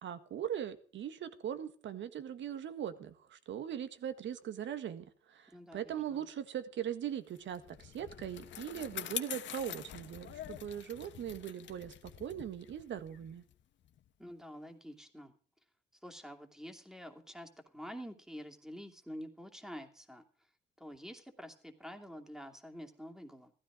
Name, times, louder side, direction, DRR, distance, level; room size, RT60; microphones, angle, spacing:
voice 1, 0.0-13.4, right 9 dB, 70° right, 11 dB, 1.7 m, -40 dB
voice 2, 5.5-6.2 14.2-15.3 16.0-20.2 20.8-23.5, equal, ahead, 4 dB, 2.7 m, -48 dB
Bicycle, 7.4-14.1, left 11 dB, 65° left, 1.2 m, -45 dB
15.5 x 14.0 x 5.0 m, 0.42 s
cardioid pair, 90°, 20 cm